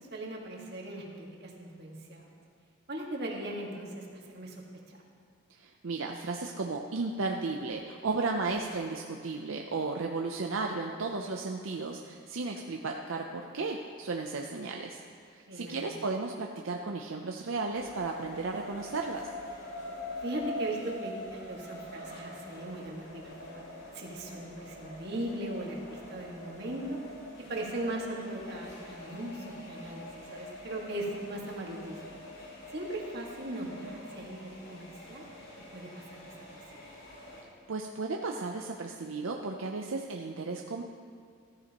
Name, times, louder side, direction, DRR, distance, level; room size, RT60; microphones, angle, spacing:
voice 1, 0.0-2.2 2.9-4.6 4.9-5.0 15.5-15.9 20.2-27.0 27.4-32.2 32.7-35.3 35.7-36.3 36.9-37.0, right 1 dB, 55° right, -1 dB, 1.8 m, -39 dB
voice 2, 5.5-15.0 15.3-19.3 37.7-40.8, right 3 dB, 75° right, 2 dB, 0.6 m, -34 dB
sound 1, 17.7-37.4, left 1 dB, 75° left, 3.1 m, -45 dB
14.0 x 14.0 x 3.0 m, 2.2 s
head